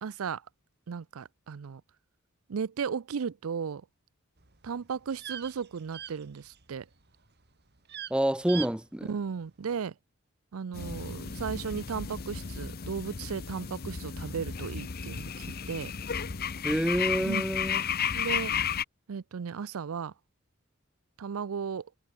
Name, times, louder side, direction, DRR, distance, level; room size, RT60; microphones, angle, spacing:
voice 1, 0.0-0.4 0.9-1.8 2.5-3.8 4.6-6.9 9.1-9.9 10.5-15.9 17.2-17.4 18.1-18.5 19.1-20.1 21.2-21.9, right 6 dB, 75° right, 0.5 m, -35 dB
sound 1, 4.4-6.8 7.1-7.5 7.8-8.1 8.5-8.7 9.0-9.1, right 10 dB, 50° right, 2.9 m, -41 dB
voice 2, 8.1-9.1 16.6-17.8, right 1 dB, 5° right, 0.5 m, -27 dB
sound 2, 10.7-18.8, left 7 dB, 45° left, 0.8 m, -33 dB
head